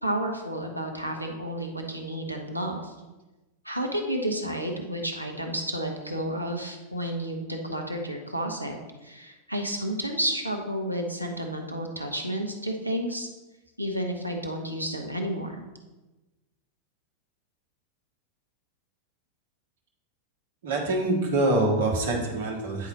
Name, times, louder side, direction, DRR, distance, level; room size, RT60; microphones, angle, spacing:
voice 1, 0.0-2.9 3.6-8.8 9.0-13.3 13.8-15.6, right 1 dB, 85° right, 3 dB, 0.9 m, -31 dB
voice 2, 20.6-22.9, right 2 dB, 60° right, 0 dB, 1.5 m, -25 dB
9.5 x 4.0 x 4.1 m, 1.1 s
figure-of-eight pair, 90°, 0 cm